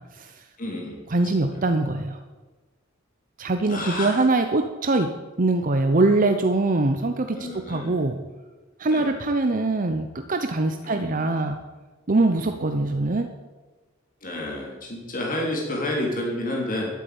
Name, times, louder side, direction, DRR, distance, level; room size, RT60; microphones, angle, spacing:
voice 1, 0.0-0.4 1.1-2.2 3.4-5.1 5.4-8.2 8.8-11.6 12.1-13.3, right 2 dB, 40° right, 7 dB, 0.8 m, -23 dB
voice 2, 0.6-1.0 1.3-1.5 3.7-4.1 7.3-7.9 8.9-9.1 10.8-11.4 12.4-13.0 14.2-16.9, left 1 dB, 45° left, -2 dB, 3.7 m, -30 dB
12.5 x 8.5 x 8.6 m, 1.2 s
head